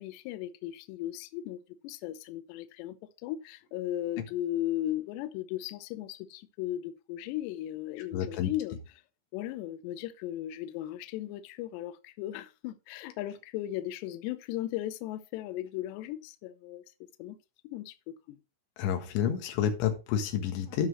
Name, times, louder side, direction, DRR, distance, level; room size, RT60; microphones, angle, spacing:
voice 1, 0.0-1.6 1.8-8.8 9.3-16.8 17.2-17.4 17.6-18.4, left 13 dB, 90° left, 2.5 m, -36 dB
voice 2, 8.1-8.5 18.8-20.9, left 9 dB, 70° left, 3.7 m, -29 dB
15.0 x 5.8 x 3.1 m
omnidirectional pair, 5.9 m